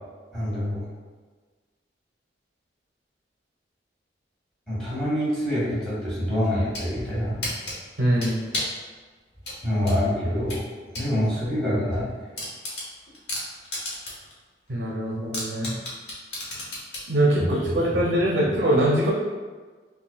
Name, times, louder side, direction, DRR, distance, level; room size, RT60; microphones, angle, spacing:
voice 1, 0.3-0.9 4.7-7.4 9.6-10.7 10.9-12.1 17.4-18.0 18.4-18.6, equal, 5° left, -10 dB, 1.5 m, -26 dB
sound 1, 6.4-6.9 7.4-8.8 9.4-11.1 11.5-11.6 11.9-12.0 12.4-14.3 14.7-14.8 15.3-17.1, left 1 dB, 75° left, 1.2 m, -32 dB
voice 2, 8.0-8.4 14.7-15.7 17.1-19.1, right 1 dB, 65° right, -3 dB, 0.6 m, -22 dB
5.5 x 2.5 x 2.2 m, 1.4 s
head